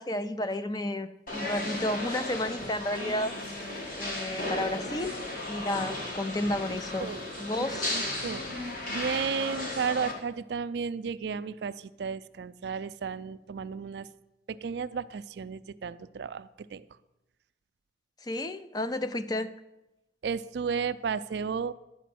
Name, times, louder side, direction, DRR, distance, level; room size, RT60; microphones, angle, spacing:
voice 1, 0.0-3.3 4.0-5.2 5.5-7.1 7.4-8.0 18.2-19.5, left 1 dB, 20° left, 11 dB, 0.4 m, -32 dB
sound 1, 1.3-10.1, left 1 dB, 50° left, 1.8 m, -35 dB
voice 2, 6.7-7.2 7.6-14.1 14.5-16.9 20.2-21.7, right 6 dB, 65° right, 14 dB, 0.4 m, -34 dB
11.0 x 5.0 x 7.7 m, 0.95 s
head